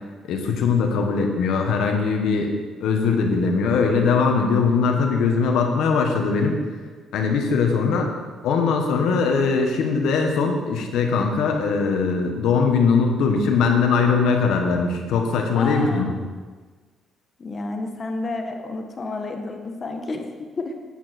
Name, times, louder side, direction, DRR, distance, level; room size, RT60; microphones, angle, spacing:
voice 1, 0.3-2.5 2.8-6.6 7.1-8.1 8.4-16.1, left 5 dB, 85° left, 3 dB, 1.6 m, -21 dB
voice 2, 15.5-16.1 17.4-20.7, left 3 dB, 40° left, 4 dB, 1.4 m, -30 dB
9.1 x 9.0 x 4.5 m, 1.4 s
cardioid pair, 90°, 0 cm